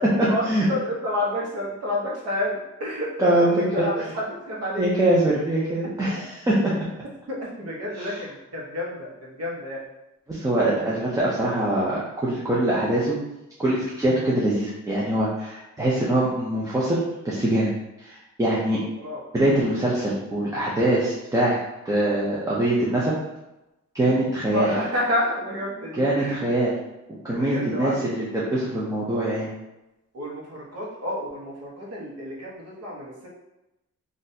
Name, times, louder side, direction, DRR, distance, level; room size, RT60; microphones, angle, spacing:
voice 1, 0.0-4.9 7.3-9.8 10.8-11.0 19.0-19.2 24.4-26.5 27.3-28.1 30.1-33.3, left 1 dB, 55° right, -4 dB, 1.0 m, -30 dB
voice 2, 3.2-3.8 4.8-6.8 8.0-8.1 10.3-13.2 13.6-17.7 18.0-18.8 19.3-21.6 21.8-23.1 23.9-24.7 26.0-26.7 27.1-29.5, right 1 dB, 10° right, -7 dB, 0.4 m, -23 dB
3.9 x 2.5 x 2.6 m, 0.95 s
wide cardioid pair, 175°, 30 cm